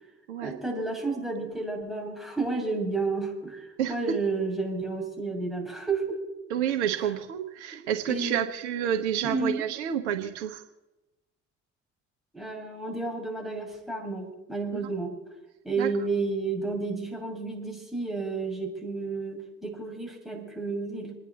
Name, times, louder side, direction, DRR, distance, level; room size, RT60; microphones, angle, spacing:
voice 1, 0.4-6.2 7.7-8.4 9.2-9.6 12.3-15.1 15.6-21.1, right 3 dB, ahead, -2 dB, 6.8 m, -31 dB
voice 2, 3.8-4.2 6.5-10.6 14.7-14.9 15.8-15.9, right 9 dB, 75° right, 6 dB, 1.2 m, -29 dB
28.0 x 10.0 x 4.2 m, 1.0 s
figure-of-eight pair, 50°, 34 cm